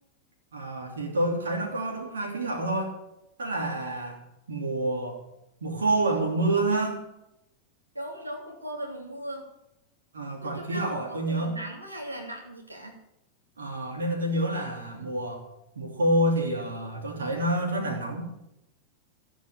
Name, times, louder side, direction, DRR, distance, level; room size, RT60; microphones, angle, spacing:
voice 1, 0.5-3.0 3.4-4.2 4.5-5.2 5.6-7.0 10.1-11.6 13.6-15.5 15.8-18.2, right 1 dB, 70° right, 1 dB, 3.0 m, -28 dB
voice 2, 7.9-9.5 10.4-13.0, right 1 dB, 85° right, -2 dB, 3.1 m, -38 dB
15.0 x 8.3 x 7.9 m, 0.87 s
figure-of-eight pair, 90°, 0 cm